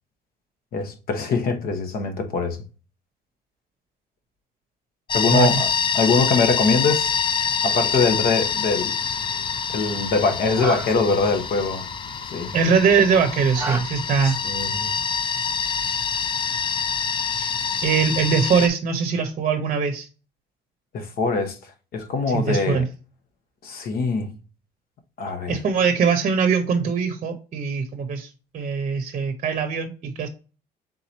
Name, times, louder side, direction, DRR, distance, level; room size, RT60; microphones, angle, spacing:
voice 1, 0.7-2.6 5.1-5.7 5.9-7.2 7.6-9.0 9.7-11.8 12.2-12.5 14.2-14.9 20.9-22.8 23.6-24.3 25.2-25.6, left 4 dB, 65° left, 0.9 m, -23 dB
sound 1, 5.1-18.7, left 6 dB, 30° left, 0.4 m, -26 dB
voice 2, 5.3-5.6 12.5-14.4 17.4-17.5 17.8-20.1 22.3-22.9 25.5-30.3, right 6 dB, 45° right, 0.7 m, -22 dB
sound 2, 7.6-13.8, right 3 dB, 15° right, 1.1 m, -37 dB
3.8 x 2.9 x 3.9 m
cardioid pair, 110°, 17 cm